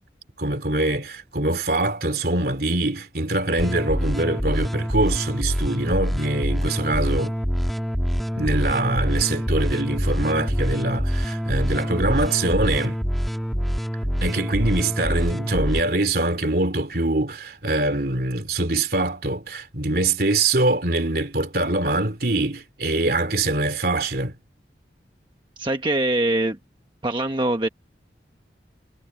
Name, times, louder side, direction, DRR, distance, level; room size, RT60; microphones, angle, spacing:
voice 1, 0.4-7.3 8.3-12.9 14.2-24.3, right 2 dB, 55° right, 3.2 m, -23 dB
sound 1, 3.6-15.8, equal, ahead, 1.8 m, -25 dB
voice 2, 25.6-26.6 27.0-27.7, right 1 dB, 25° right, 1.1 m, -23 dB
head